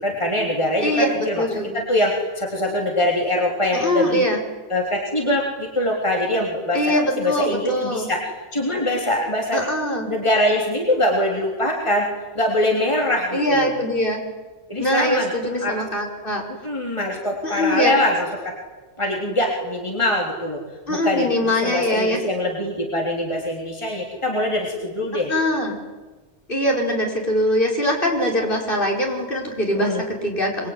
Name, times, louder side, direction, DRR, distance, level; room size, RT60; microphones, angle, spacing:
voice 1, 0.0-1.4 1.7-4.3 4.7-9.6 10.1-12.1 12.3-13.7 14.7-15.3 15.6-15.8 16.5-18.5 19.0-20.6 20.9-25.3 29.7-30.0, left 1 dB, 25° left, 0 dB, 3.7 m, -23 dB
voice 2, 0.8-1.8 3.7-4.4 6.7-8.1 9.5-10.1 13.3-14.2 14.8-16.4 17.4-17.9 20.9-22.2 25.3-25.8 26.5-30.7, equal, 50° left, 0 dB, 6.0 m, -22 dB
25.0 x 24.0 x 9.9 m, 1.2 s
omnidirectional pair, 1.1 m